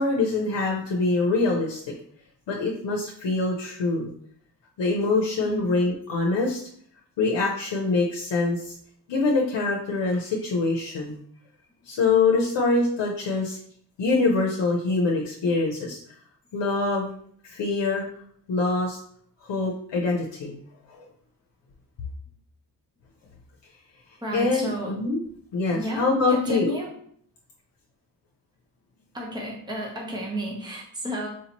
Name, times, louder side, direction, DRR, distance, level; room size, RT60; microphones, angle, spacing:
voice 1, 0.0-1.8 2.5-4.1 4.8-6.6 7.2-8.7 9.1-11.2 11.9-13.6 14.0-16.0 16.5-17.1 17.4-18.0 18.5-19.0 19.5-20.6 24.3-25.2 25.5-26.7, left 3 dB, 80° left, -1 dB, 0.7 m, -24 dB
voice 2, 24.2-25.0 25.7-26.9 29.1-31.3, equal, 10° right, -2 dB, 0.9 m, -31 dB
4.6 x 2.8 x 2.9 m, 0.62 s
wide cardioid pair, 120°, 43 cm